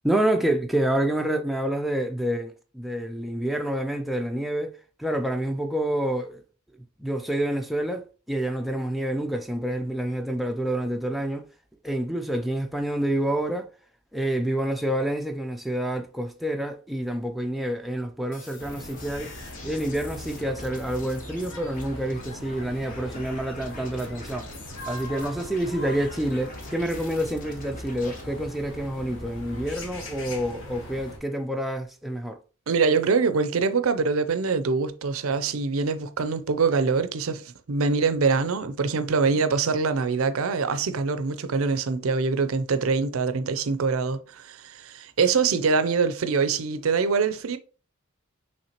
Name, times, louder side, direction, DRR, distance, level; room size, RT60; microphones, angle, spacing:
voice 1, 0.0-6.4 7.0-11.5 11.8-13.7 14.1-19.3 19.6-24.5 24.9-32.4, right 1 dB, ahead, 0.4 m, -28 dB
sound 1, 18.3-28.2, left 3 dB, 40° left, 1.0 m, -46 dB
sound 2, 18.6-31.2, left 1 dB, 65° left, 1.4 m, -40 dB
voice 2, 32.7-47.6, right 4 dB, 75° right, 0.5 m, -24 dB
5.7 x 3.2 x 2.9 m
head